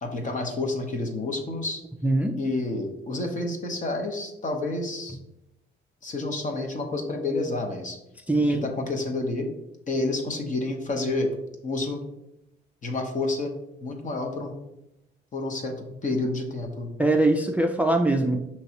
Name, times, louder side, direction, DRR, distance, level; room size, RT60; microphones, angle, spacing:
voice 1, 0.0-1.8 2.4-5.2 6.0-8.0 8.5-9.5 9.9-11.3 11.6-12.0 12.8-13.5 13.8-14.5 15.3-15.7 16.0-16.9, left 2 dB, 40° left, 3 dB, 1.0 m, -29 dB
voice 2, 2.0-2.3 8.3-8.7 17.0-18.4, right 2 dB, 5° right, 3 dB, 0.4 m, -22 dB
5.8 x 3.0 x 2.9 m, 0.88 s
cardioid pair, 90°, 20 cm